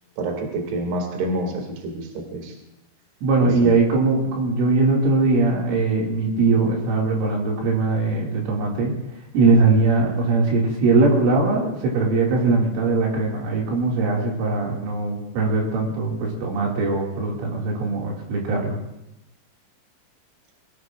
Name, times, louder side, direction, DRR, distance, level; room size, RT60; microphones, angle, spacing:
voice 1, 0.2-2.5 3.4-3.7, right 1 dB, 60° right, 1 dB, 4.0 m, -28 dB
voice 2, 3.2-8.9 9.3-18.8, right 3 dB, 75° right, -2 dB, 4.7 m, -21 dB
22.0 x 18.0 x 2.5 m, 0.90 s
omnidirectional pair, 5.8 m